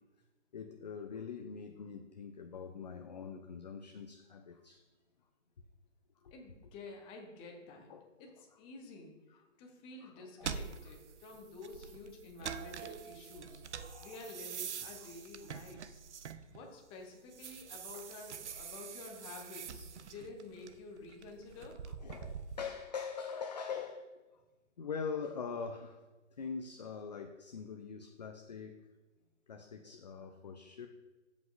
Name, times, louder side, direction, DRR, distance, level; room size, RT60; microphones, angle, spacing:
voice 1, 0.5-4.8 6.2-6.3 7.9-8.3 10.0-10.6 13.5-14.3 17.9-18.1 21.9-24.1 24.8-26.0 26.4-28.8 29.5-30.9, left 6 dB, 35° left, 5 dB, 0.4 m, -43 dB
voice 2, 6.3-7.9 8.2-8.3 8.6-9.2 9.6-13.6 14.0-16.0 16.5-21.7, left 3 dB, 15° left, 1 dB, 0.8 m, -50 dB
sound 1, 10.4-16.8 17.2-22.6, right 7 dB, 65° right, 0.6 m, -45 dB
14.5 x 5.2 x 2.5 m, 1.2 s
figure-of-eight pair, 135°, 38 cm